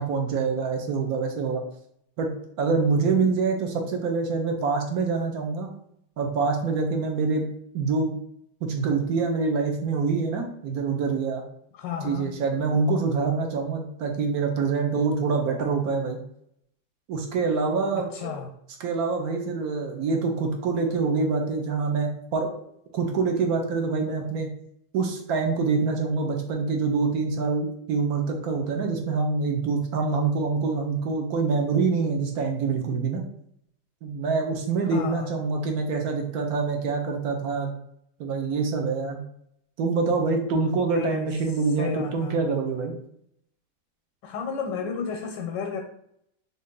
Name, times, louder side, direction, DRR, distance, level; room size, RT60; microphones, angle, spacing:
voice 1, 0.0-1.6 2.2-2.3 2.6-5.7 6.2-7.5 7.7-8.2 8.6-11.4 12.0-16.2 17.1-18.3 18.8-22.5 22.9-24.5 24.9-33.2 34.0-37.7 38.2-39.2 39.8-42.9, right 4 dB, 65° right, 2 dB, 1.1 m, -25 dB
voice 2, 11.7-12.4 17.9-18.5 34.8-35.3 40.5-41.3 41.8-42.3 44.2-45.8, left 7 dB, 85° left, 3 dB, 1.3 m, -33 dB
3.8 x 2.8 x 3.7 m, 0.71 s
omnidirectional pair, 1.9 m